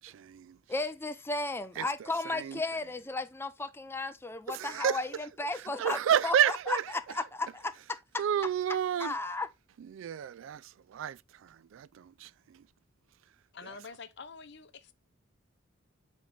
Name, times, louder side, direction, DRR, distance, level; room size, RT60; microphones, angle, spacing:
voice 1, 0.0-0.6 1.8-2.6 4.5-5.0 5.8-6.8 8.2-9.1 9.8-12.6, right 9 dB, 70° right, 0.3 m, -31 dB
voice 2, 0.7-8.2 9.0-9.5, left 2 dB, 10° left, 0.5 m, -34 dB
voice 3, 13.5-14.9, left 5 dB, 60° left, 0.8 m, -46 dB
8.1 x 3.2 x 3.8 m
head